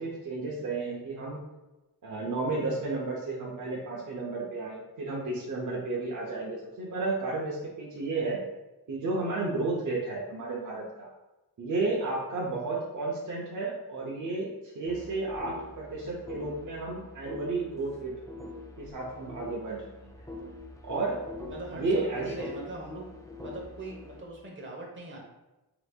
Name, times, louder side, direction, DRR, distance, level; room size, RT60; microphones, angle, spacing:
voice 1, 0.0-1.4 2.0-8.4 8.9-11.1 11.6-18.2 18.8-20.1 20.8-21.2 21.7-22.3, right 3 dB, 50° right, -4 dB, 0.8 m, -32 dB
sound 1, 14.9-24.2, left 2 dB, 10° left, 0.4 m, -44 dB
voice 2, 21.5-23.1 23.4-25.2, right 2 dB, 30° right, -1 dB, 1.1 m, -41 dB
5.7 x 2.9 x 2.4 m, 1.0 s
wide cardioid pair, 115°, 39 cm